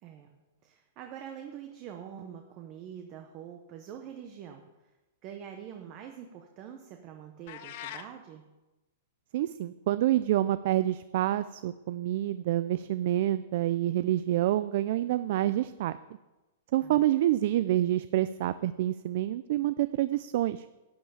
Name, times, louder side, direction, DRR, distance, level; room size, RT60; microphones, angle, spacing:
voice 1, 0.0-4.6 5.2-8.4 16.8-17.1, right 9 dB, 25° right, 4 dB, 0.8 m, -45 dB
sound 1, 7.5-8.1, left 11 dB, 40° left, 0.6 m, -41 dB
voice 2, 9.3-16.0 16.7-20.7, right 13 dB, 45° right, 13 dB, 0.3 m, -27 dB
12.0 x 5.6 x 8.8 m, 1.1 s
supercardioid pair, 170°, 0 cm